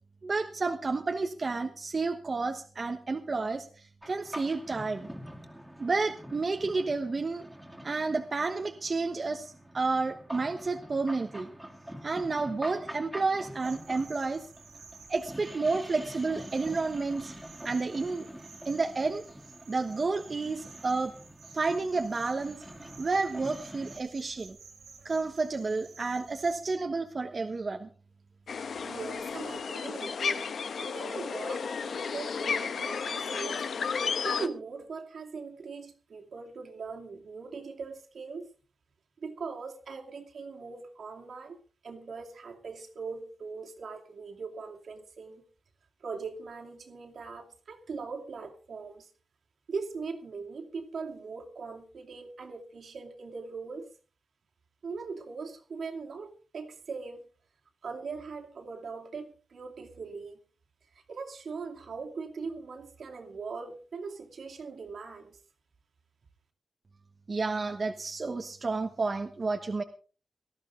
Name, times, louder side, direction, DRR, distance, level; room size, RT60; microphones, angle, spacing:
voice 1, 0.2-5.1 5.8-7.5 7.8-11.5 12.0-14.5 15.1-17.3 17.6-18.3 18.6-19.2 19.7-21.1 21.5-22.6 23.0-24.6 25.0-27.9 67.3-69.8, right 3 dB, 35° right, 1.1 m, -30 dB
sound 1, 4.0-24.0, equal, 5° right, 2.4 m, -46 dB
sound 2, 13.6-26.8, right 5 dB, 85° right, 3.8 m, -53 dB
sound 3, 28.5-34.5, left 5 dB, 70° left, 1.1 m, -33 dB
voice 2, 28.8-30.4 30.8-33.7 34.2-38.5 39.2-45.4 46.0-49.1 49.7-53.9 54.8-57.2 57.8-60.4 60.9-65.4, right 4 dB, 70° right, 2.5 m, -40 dB
18.5 x 13.5 x 3.8 m
wide cardioid pair, 130°, 0 cm